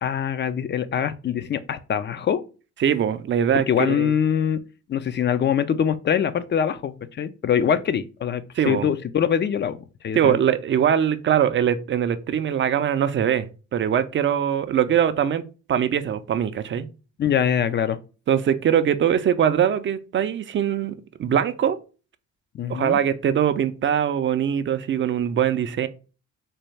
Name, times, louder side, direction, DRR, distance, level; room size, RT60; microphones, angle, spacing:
voice 1, 0.0-2.4 3.7-4.6 4.9-9.8 10.0-10.4 17.2-18.0 22.5-23.0, left 8 dB, 35° left, 0.4 m, -23 dB
voice 2, 2.8-4.1 8.6-8.9 10.1-13.5 13.7-15.4 15.7-16.9 18.3-21.8 22.7-25.9, right 9 dB, 40° right, 0.4 m, -22 dB
4.1 x 2.3 x 3.2 m
cardioid pair, 90°, 30 cm